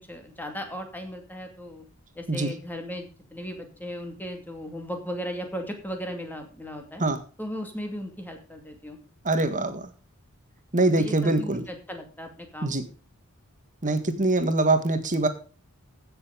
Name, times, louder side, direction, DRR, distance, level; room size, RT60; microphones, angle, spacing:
voice 1, 0.1-1.8 2.1-7.0 7.4-9.0 11.0-12.8, equal, 10° left, 4 dB, 2.5 m, -36 dB
voice 2, 9.3-9.9 10.7-11.6 12.6-12.8 13.8-15.3, right 2 dB, 35° right, 9 dB, 1.7 m, -23 dB
15.5 x 6.9 x 5.2 m, 0.35 s
head